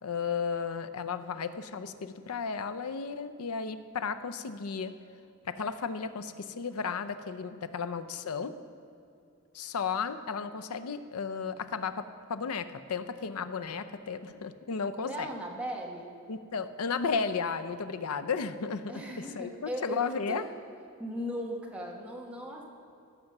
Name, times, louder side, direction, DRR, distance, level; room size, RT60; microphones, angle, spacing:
voice 1, 0.0-4.9 5.4-8.5 9.5-15.3 16.3-20.4, left 5 dB, 90° left, 10 dB, 0.6 m, -34 dB
voice 2, 15.0-16.1 18.9-20.4 21.0-22.6, equal, 5° right, -2 dB, 1.3 m, -38 dB
15.5 x 5.9 x 6.6 m, 2.6 s
head